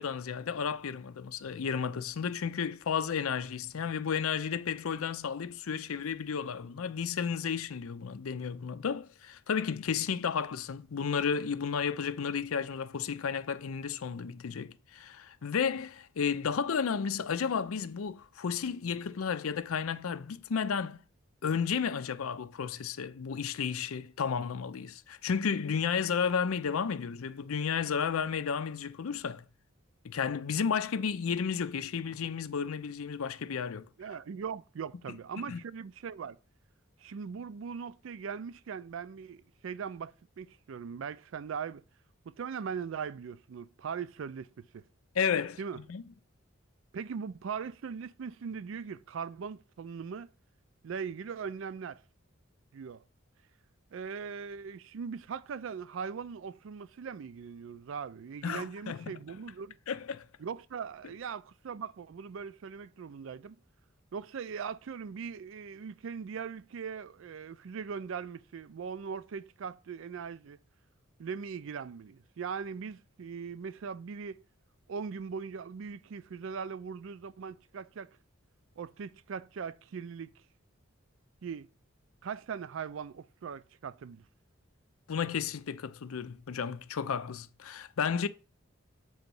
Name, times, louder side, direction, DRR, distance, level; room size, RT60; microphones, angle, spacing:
voice 1, 0.0-21.0 21.4-29.4 30.0-33.9 35.5-35.6 45.1-45.6 45.9-46.0 58.4-59.1 59.9-60.2 85.1-88.3, left 6 dB, 85° left, 0.5 m, -32 dB
voice 2, 34.0-36.4 37.0-41.8 42.3-44.8 45.6-45.8 46.9-50.3 50.8-52.0 52.7-53.0 53.9-59.8 60.4-63.6 64.1-70.6 71.2-74.4 74.9-78.2 78.8-80.3 81.4-81.7 82.2-84.2, right 6 dB, 65° right, 0.4 m, -40 dB
7.7 x 3.0 x 5.3 m
head